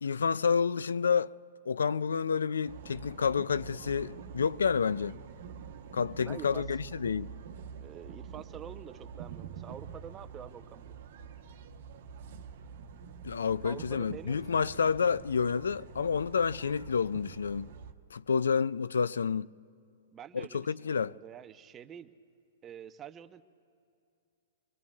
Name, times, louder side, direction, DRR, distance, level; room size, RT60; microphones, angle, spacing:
voice 1, 0.0-1.3 1.7-5.2 5.9-7.3 13.2-17.7 18.1-19.5 20.3-21.2, left 6 dB, 85° left, 0.3 m, -29 dB
sound 1, 2.7-17.9, right 7 dB, 65° right, 1.0 m, -46 dB
voice 2, 6.2-6.6 7.8-10.9 13.6-14.6 20.1-22.1 22.6-23.4, right 9 dB, 25° right, 0.6 m, -47 dB
26.5 x 21.5 x 2.4 m
hypercardioid pair, 130°, 0 cm